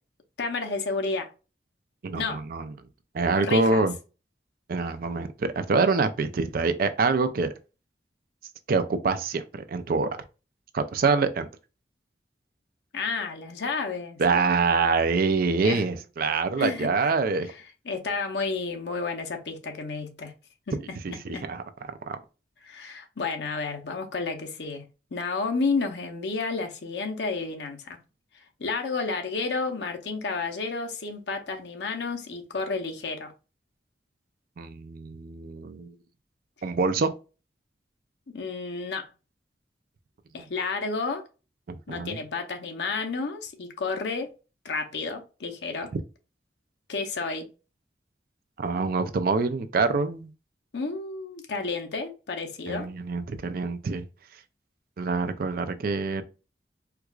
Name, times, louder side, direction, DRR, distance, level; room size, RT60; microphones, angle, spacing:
voice 1, 0.4-1.3 2.1-2.4 3.3-3.8 12.9-14.2 15.6-15.8 16.6-16.9 17.5-20.3 20.7-21.5 22.6-24.8 25.1-28.0 28.6-33.3 38.3-39.1 40.3-41.2 41.9-44.3 44.6-45.9 46.9-47.5 50.7-52.9, left 4 dB, 75° left, 0.7 m, -31 dB
voice 2, 2.0-2.7 3.1-3.9 4.7-7.5 8.7-10.1 10.7-11.5 14.2-17.5 21.0-21.6 22.1-22.2 34.6-35.9 36.6-37.1 41.7-42.2 48.6-50.3 52.7-54.0 55.0-56.2, right 4 dB, 55° right, 0.4 m, -25 dB
4.5 x 2.4 x 2.3 m
head